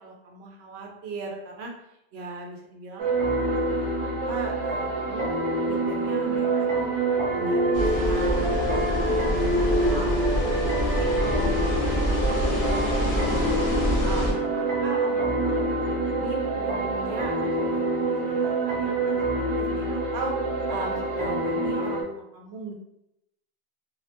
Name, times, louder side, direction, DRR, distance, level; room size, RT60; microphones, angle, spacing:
voice 1, 0.0-1.7 2.1-5.4 5.6-6.9 7.3-10.3 10.9-20.4 20.7-22.7, right 3 dB, 85° right, 0 dB, 0.9 m, -39 dB
sound 1, 3.0-22.0, right 2 dB, 50° right, 0.4 m, -26 dB
sound 2, 7.7-14.3, equal, 45° left, 0.6 m, -26 dB
2.3 x 2.1 x 2.8 m, 0.83 s
omnidirectional pair, 1.1 m